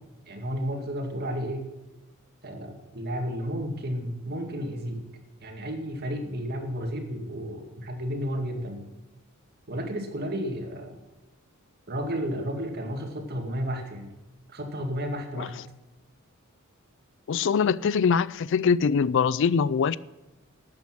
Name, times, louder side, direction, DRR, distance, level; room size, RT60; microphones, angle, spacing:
voice 1, 0.3-1.7 2.4-5.0 5.4-8.9 9.7-11.0 11.9-14.1 14.5-15.5, equal, 50° right, 2.2 m, -32 dB
voice 2, 17.3-20.0, left 6 dB, 60° left, 0.4 m, -23 dB
12.5 x 8.6 x 6.2 m
head